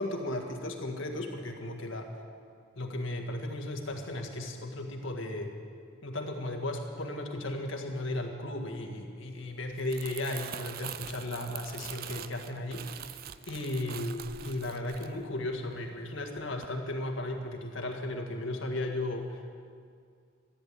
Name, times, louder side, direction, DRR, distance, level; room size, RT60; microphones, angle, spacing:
voice 1, 0.0-2.1 2.7-5.5 6.0-13.2 13.5-19.5, left 1 dB, 75° left, 3 dB, 1.7 m, -35 dB
Crumpling crinkling, 9.6-16.0 16.4-16.7, right 10 dB, 45° right, 0.4 m, -44 dB
14.5 x 10.0 x 8.2 m, 2.2 s
head